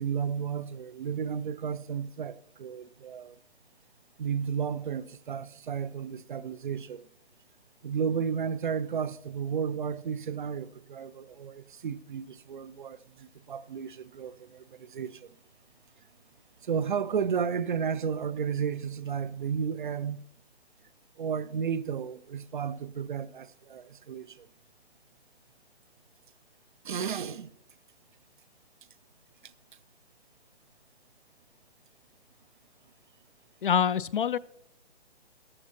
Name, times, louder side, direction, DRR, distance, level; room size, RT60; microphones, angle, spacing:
voice 1, 0.0-3.4 4.2-7.1 7.8-15.3 16.6-20.2 21.2-24.5 26.8-27.5 29.4-29.5, right 7 dB, 45° right, 0.5 m, -33 dB
voice 2, 33.6-34.4, left 8 dB, 50° left, 0.4 m, -25 dB
13.5 x 12.5 x 2.8 m
hypercardioid pair, 150°, 34 cm